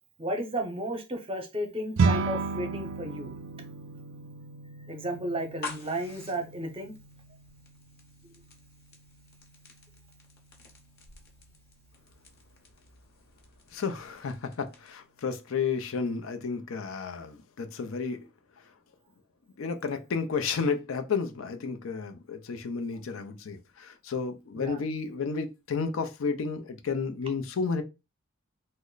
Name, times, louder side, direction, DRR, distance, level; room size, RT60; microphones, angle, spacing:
voice 1, 0.2-3.3 4.9-6.9 24.5-24.8, right 1 dB, 25° right, 0.7 m, -33 dB
sound 1, 2.0-11.4, right 4 dB, 90° right, 0.4 m, -34 dB
sound 2, 5.4-15.1, left 4 dB, 50° left, 0.9 m, -49 dB
voice 2, 13.7-18.3 19.6-27.8, left 5 dB, 75° left, 0.5 m, -32 dB
3.1 x 2.1 x 3.8 m
head